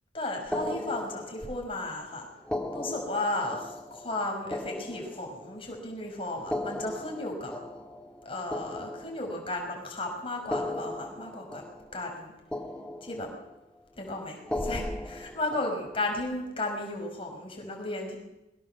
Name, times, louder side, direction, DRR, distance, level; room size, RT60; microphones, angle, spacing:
voice 1, 0.1-2.3 2.7-3.6 3.9-7.5 8.2-11.6 11.9-12.3 13.0-13.3 14.0-18.2, left 2 dB, 30° left, 1 dB, 5.6 m, -34 dB
sound 1, 0.5-1.8 2.4-5.7 6.4-9.7 10.4-12.2 12.5-13.6 14.4-16.2, left 1 dB, 5° left, 1.9 m, -37 dB
22.5 x 19.0 x 7.3 m, 0.92 s
head